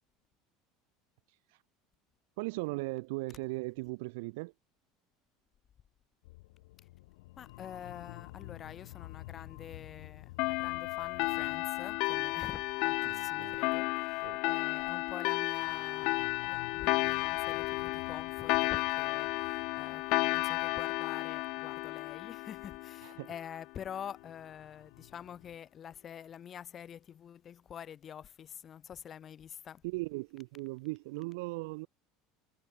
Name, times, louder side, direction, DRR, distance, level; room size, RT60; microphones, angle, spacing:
voice 1, 1.3-1.6 2.4-4.5 13.0-13.6 14.2-14.6 23.0-23.3 29.8-31.9, right 26 dB, 70° right, 4.1 m, -38 dB
sound 1, 6.2-25.6, left 21 dB, 90° left, 4.0 m, -53 dB
voice 2, 7.4-29.8, left 9 dB, 25° left, 1.7 m, -47 dB
sound 2, 10.4-23.5, left 25 dB, 50° left, 1.3 m, -33 dB
cardioid pair, 180°, 0 cm